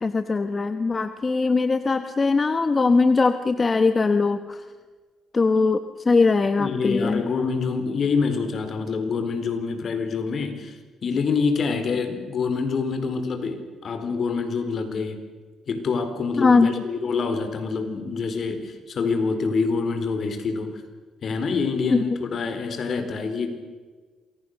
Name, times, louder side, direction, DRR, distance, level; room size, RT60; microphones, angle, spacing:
voice 1, 0.0-4.6 5.3-7.2 16.4-16.7 21.9-22.0, left 4 dB, 30° left, 9 dB, 1.3 m, -21 dB
voice 2, 6.6-15.2 15.7-20.8 21.2-23.5, left 4 dB, 55° left, 8 dB, 4.3 m, -26 dB
27.5 x 22.0 x 6.7 m, 1.4 s
cardioid pair, 90°, 0 cm